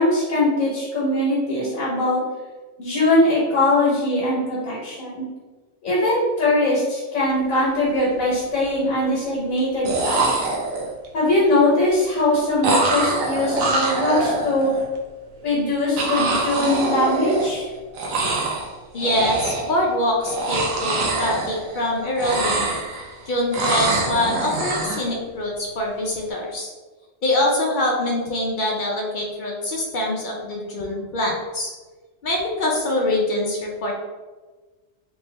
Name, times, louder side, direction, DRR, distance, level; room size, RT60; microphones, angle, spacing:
voice 1, 0.0-2.2 2.8-5.2 5.8-10.5 11.1-14.7 15.4-17.7, left 1 dB, 90° left, -6 dB, 1.4 m, -21 dB
sound 1, 7.4-7.6 7.9-8.5 9.6-9.7 9.8-11.1 12.6-14.8 16.0-17.7 17.9-18.7 19.0-19.8 20.2-21.9 22.1-23.1 23.5-25.1, right 2 dB, 85° right, 1.1 m, -24 dB
voice 2, 18.9-22.7 23.3-26.7 27.2-31.7 32.2-34.0, left 1 dB, 65° left, -1 dB, 0.5 m, -24 dB
3.3 x 2.6 x 3.1 m, 1.3 s
omnidirectional pair, 1.4 m